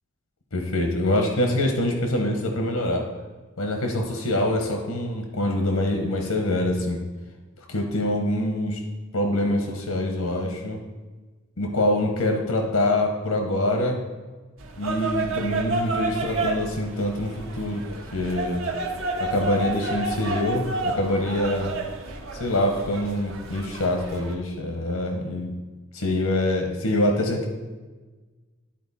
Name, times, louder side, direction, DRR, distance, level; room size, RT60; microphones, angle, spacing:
voice 1, 0.5-3.1 3.6-7.0 7.7-8.8 9.1-10.8 11.6-14.0 14.8-17.3 17.6-17.8 18.1-18.6 19.2-21.7 22.3-25.5 25.9-27.5, left 1 dB, 90° left, 3 dB, 1.0 m, -25 dB
sound 1, 14.6-24.3, right 3 dB, 65° right, 1.0 m, -30 dB
12.0 x 4.3 x 4.2 m, 1.3 s
head